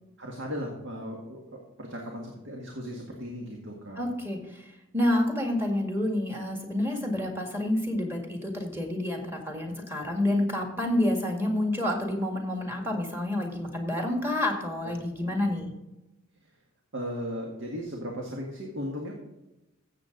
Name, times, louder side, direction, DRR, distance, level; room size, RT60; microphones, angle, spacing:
voice 1, 0.2-4.1 14.8-14.9 15.3-15.6 16.4-16.6 16.9-19.1, equal, 60° right, -1 dB, 1.8 m, -37 dB
voice 2, 4.0-15.7, left 1 dB, 10° right, 2 dB, 1.9 m, -28 dB
15.0 x 7.6 x 3.9 m, 0.97 s
head